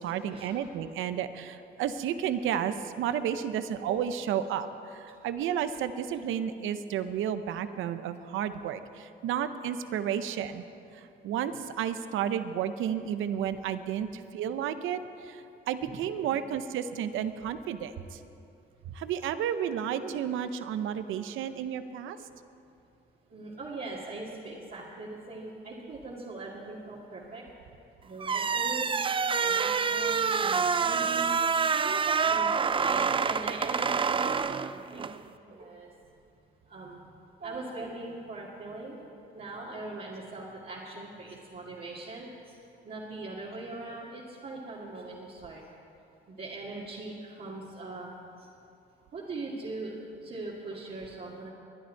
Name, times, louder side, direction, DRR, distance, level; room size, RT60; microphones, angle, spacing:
voice 1, 0.0-10.6 10.9-18.2 18.9-22.2, right 9 dB, 85° right, 11 dB, 0.7 m, -32 dB
voice 2, 23.3-27.4 28.0-28.9 29.4-31.3 31.7-35.1 35.5-35.9 36.7-37.0 37.4-39.0 39.3-42.6 42.8-45.6 46.3-48.1 49.1-51.5, right 2 dB, 50° right, -6 dB, 2.2 m, -41 dB
sound 1, 28.2-35.2, right 5 dB, 25° right, 0.4 m, -27 dB
21.5 x 10.5 x 4.5 m, 2.6 s
cardioid pair, 90°, 20 cm